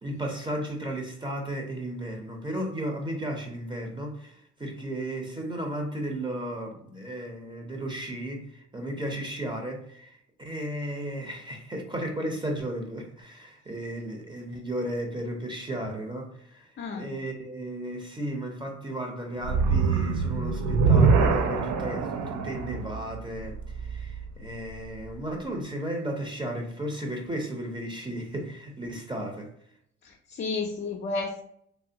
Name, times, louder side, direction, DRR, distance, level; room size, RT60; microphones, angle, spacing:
voice 1, 0.0-16.7 16.9-29.5, right 1 dB, 15° right, 2 dB, 0.7 m, -34 dB
voice 2, 16.8-17.1 30.0-31.4, left 3 dB, 40° left, 1 dB, 0.5 m, -32 dB
sound 1, 19.4-24.7, right 5 dB, 75° right, 0.5 m, -24 dB
3.3 x 2.2 x 2.7 m, 0.71 s
cardioid pair, 90°, 30 cm